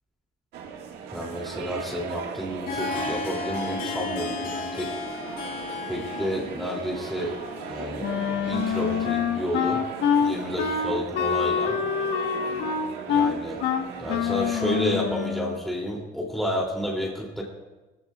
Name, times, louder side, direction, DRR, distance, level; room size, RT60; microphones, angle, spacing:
sound 1, 0.5-15.1, right 6 dB, 85° right, 1.7 m, -38 dB
voice 1, 1.1-4.9 5.9-7.4 7.7-9.8 10.2-11.8 13.1-13.6 14.0-17.4, equal, ahead, -3 dB, 2.8 m, -30 dB
Harp, 2.4-10.1, left 4 dB, 60° left, 2.1 m, -35 dB
Wind instrument woodwind instrument, 8.0-15.6, left 7 dB, 85° left, 1.3 m, -26 dB
19.0 x 15.5 x 2.4 m, 1.1 s
cardioid pair, 110°, 17 cm